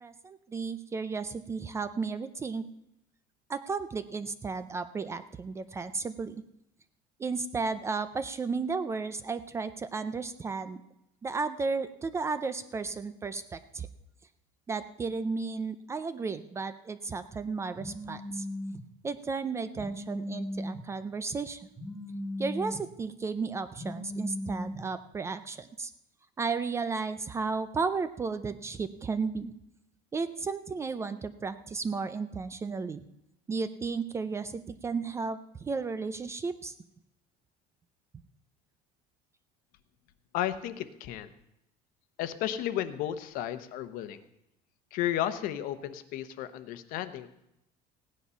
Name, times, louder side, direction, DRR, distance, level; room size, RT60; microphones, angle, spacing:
voice 1, 0.0-2.6 3.5-6.4 7.2-10.8 11.2-13.9 14.7-18.5 19.0-21.6 22.4-25.9 26.4-29.5 30.1-33.0 33.5-36.7, right 4 dB, 15° right, 12 dB, 0.4 m, -34 dB
Telephone, 17.8-18.8 19.8-20.8 21.8-22.8 23.8-24.8, left 1 dB, 5° left, 1.7 m, -37 dB
voice 2, 40.3-41.3 42.2-44.2 44.9-47.3, left 11 dB, 55° left, 11 dB, 1.0 m, -33 dB
16.0 x 9.7 x 5.6 m, 0.84 s
cardioid pair, 165°, 17 cm